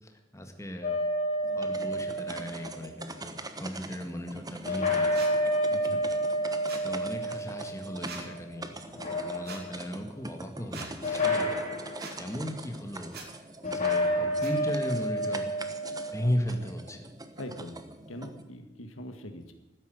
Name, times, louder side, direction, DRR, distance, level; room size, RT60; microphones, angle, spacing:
voice 1, 0.0-1.0 1.5-5.1 6.8-11.5 12.2-13.2 13.7-15.5 16.1-17.1, equal, 15° left, 4 dB, 1.8 m, -36 dB
sound 1, 0.8-2.9 4.7-8.4 8.9-9.9 11.0-12.2 13.6-16.4, equal, 40° left, 4.2 m, -30 dB
sound 2, 1.4-18.4, right 2 dB, 20° right, 1.0 m, -44 dB
sound 3, 5.1-5.3 6.7-6.9 8.0-8.2 9.4-9.6 10.7-10.9 12.0-12.2 13.1-13.3 14.4-14.5, right 4 dB, 55° right, 2.9 m, -42 dB
voice 2, 5.7-6.1 17.4-17.8 18.1-19.5, left 1 dB, 85° left, 6 dB, 1.9 m, -42 dB
13.0 x 10.0 x 9.3 m, 1.0 s
head